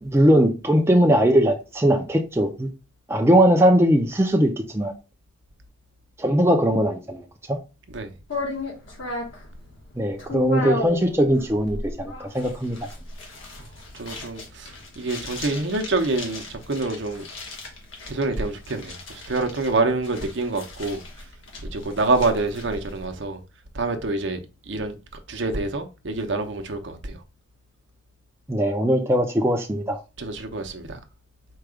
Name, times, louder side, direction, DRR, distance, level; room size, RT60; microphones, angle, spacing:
voice 1, 0.0-2.7 3.1-4.9 6.2-7.6 10.0-12.8 28.5-30.0, equal, 10° right, 0.5 m, -20 dB
sound 1, 8.3-23.0, left 2 dB, 70° left, 1.4 m, -35 dB
voice 2, 13.9-17.2 18.1-18.9 19.3-21.0 21.7-23.4 23.7-24.4 24.7-24.9 25.3-27.2 30.2-31.0, right 3 dB, 60° right, 0.7 m, -26 dB
4.6 x 2.3 x 4.8 m
head